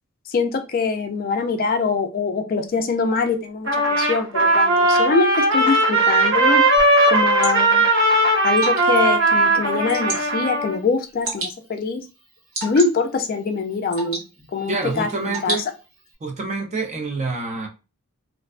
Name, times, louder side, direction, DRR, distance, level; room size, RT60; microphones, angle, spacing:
voice 1, 0.3-6.6 7.1-7.8 8.4-12.0 12.6-14.2 14.5-15.6, left 4 dB, 40° left, 0.3 m, -23 dB
Trumpet, 3.7-10.8, right 2 dB, 55° right, 0.8 m, -18 dB
Water / Drip, 6.8-16.1, right 2 dB, 75° right, 1.2 m, -35 dB
voice 2, 14.7-15.7 16.2-17.7, right 3 dB, 30° right, 0.4 m, -27 dB
2.5 x 2.2 x 2.4 m
head